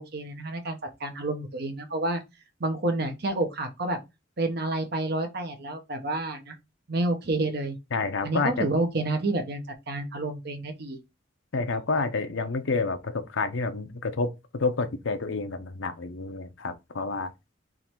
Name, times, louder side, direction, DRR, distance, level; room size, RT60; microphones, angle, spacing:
voice 1, 0.0-2.2 2.6-4.0 4.4-6.6 6.9-7.8 8.2-11.0, right 2 dB, 55° right, 1.0 m, -29 dB
voice 2, 7.9-8.7 11.5-17.3, left 3 dB, 80° left, 0.7 m, -29 dB
3.7 x 3.2 x 4.4 m
head